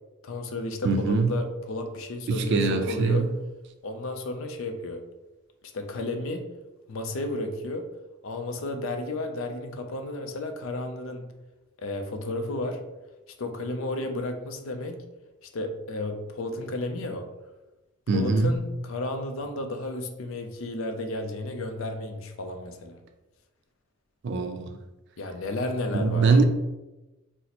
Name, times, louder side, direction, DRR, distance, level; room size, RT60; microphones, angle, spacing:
voice 1, 0.2-3.3 3.8-5.0 5.7-6.5 6.9-7.9 8.2-11.3 11.8-12.8 13.4-15.0 15.4-17.3 18.1-23.0 25.2-26.4, left 2 dB, 65° left, 0.4 m, -33 dB
voice 2, 0.8-1.4 2.3-3.4 18.1-18.6 24.2-24.8 25.9-26.4, right 4 dB, 55° right, 0.3 m, -23 dB
2.8 x 2.0 x 4.0 m
head